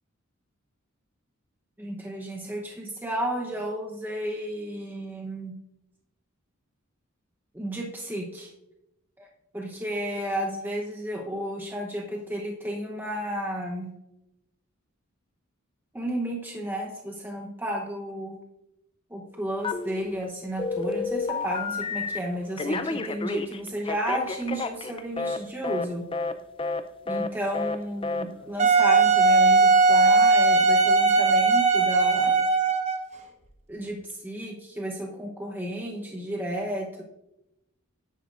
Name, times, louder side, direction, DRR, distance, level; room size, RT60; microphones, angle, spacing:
voice 1, 1.8-5.5 7.5-8.5 9.2-9.3 9.5-13.9 15.9-18.4 19.1-26.1 27.1-32.4 33.7-37.0, right 1 dB, 10° right, -1 dB, 0.8 m, -32 dB
Telephone, 19.6-20.2 20.6-22.2 22.6-25.4 25.6-25.9 26.1-26.3 26.6-26.8 27.1-27.3 27.5-27.8 28.0-28.2, left 4 dB, 25° left, 0.4 m, -30 dB
Wind instrument woodwind instrument, 28.6-33.1, right 3 dB, 35° right, 0.9 m, -19 dB
9.9 x 9.5 x 2.5 m, 0.90 s
head